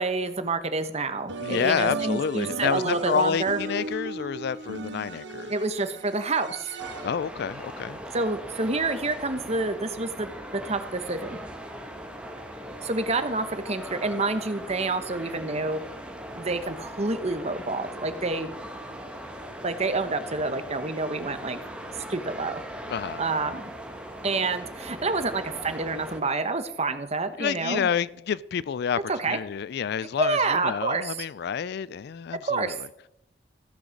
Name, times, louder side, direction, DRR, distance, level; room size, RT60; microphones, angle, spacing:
voice 1, 0.0-3.6 5.5-6.8 8.1-11.4 12.8-15.8 16.4-18.5 19.6-21.6 21.9-22.6 23.2-23.7 24.2-27.9 29.1-29.4 30.2-31.2 32.4-32.8, right 3 dB, 35° right, 1.1 m, -28 dB
sound 1, 1.3-7.4, right 3 dB, 70° right, 1.3 m, -35 dB
voice 2, 1.4-5.5 7.0-8.0 22.9-23.2 27.4-32.9, left 7 dB, 60° left, 0.3 m, -29 dB
sound 2, 6.8-26.2, right 1 dB, 5° right, 1.4 m, -40 dB
15.0 x 6.4 x 6.5 m
head